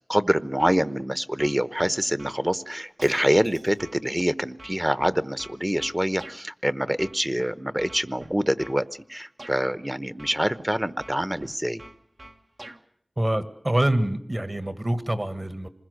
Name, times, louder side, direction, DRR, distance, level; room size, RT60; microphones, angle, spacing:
voice 1, 0.0-11.8, equal, 15° right, 14 dB, 1.0 m, -25 dB
sound 1, 0.6-1.1 1.4-2.4 3.0-3.2 3.8-6.4 7.0-7.4 7.8-8.8 9.4-9.6 10.2-10.7 11.0-12.8, right 1 dB, 60° right, 1.6 m, -45 dB
Shatter, 3.0-4.0, right 1 dB, 85° right, 7.1 m, -50 dB
voice 2, 13.2-15.7, right 1 dB, 35° right, 11 dB, 1.8 m, -25 dB
27.0 x 20.5 x 6.5 m, 0.68 s
wide cardioid pair, 45°, 0 cm